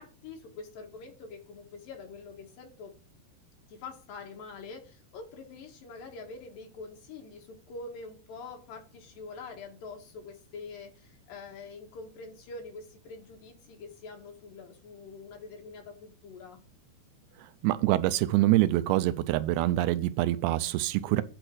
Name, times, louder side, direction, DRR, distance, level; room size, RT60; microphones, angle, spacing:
voice 1, 0.0-2.9 3.7-16.6, left 4 dB, 65° left, 2.9 m, -45 dB
voice 2, 17.6-21.2, right 16 dB, 80° right, 2.6 m, -25 dB
9.0 x 4.4 x 6.4 m
omnidirectional pair, 5.0 m